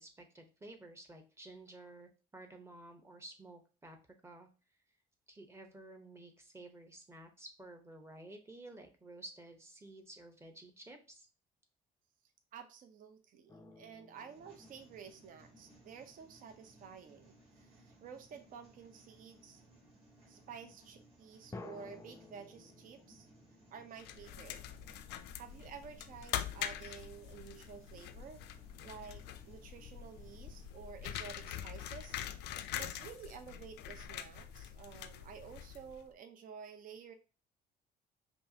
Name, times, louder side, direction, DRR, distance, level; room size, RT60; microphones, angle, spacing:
voice 1, 0.0-4.0 4.2-4.5 5.3-11.3, right 2 dB, 15° right, 4 dB, 0.8 m, -53 dB
voice 2, 12.5-19.6 20.3-23.3 23.7-24.6 25.4-28.4 28.8-32.2 32.7-37.1, right 7 dB, 55° right, 7 dB, 0.6 m, -51 dB
sound 1, 13.5-16.6 21.5-25.1, left 3 dB, 15° left, 0.4 m, -55 dB
sound 2, 14.1-30.7, right 1 dB, 35° right, 2.2 m, -62 dB
sound 3, 24.0-36.1, left 11 dB, 85° left, 0.4 m, -44 dB
5.3 x 2.4 x 2.7 m, 0.34 s
cardioid pair, 110°, 17 cm